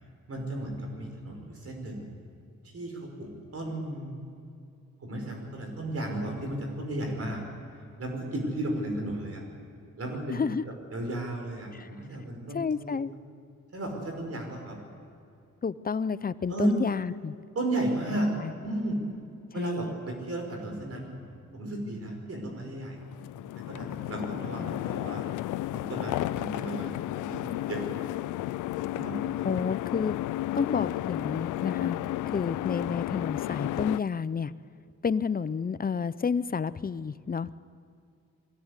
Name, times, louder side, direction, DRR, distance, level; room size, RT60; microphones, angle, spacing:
voice 1, 0.3-2.1 2.6-4.2 5.0-7.4 8.0-9.4 10.0-10.4 10.9-12.7 13.7-14.8 16.5-16.7 17.6-18.3 18.6-19.0 19.5-23.0 23.7-25.2 25.7-28.1 28.9-29.5, right 1 dB, 50° right, 2 dB, 5.4 m, -34 dB
voice 2, 10.3-10.6 11.7-11.9 12.5-13.1 15.6-17.3 18.4-18.5 19.6-19.9 24.6-24.7 29.4-30.2 30.5-32.0 32.3-34.5 35.0-37.5, left 6 dB, 30° left, 16 dB, 0.7 m, -30 dB
sound 1, 23.0-34.0, left 15 dB, 85° left, 0.4 m, -32 dB
22.0 x 16.0 x 8.2 m, 2.5 s
cardioid pair, 70°, 30 cm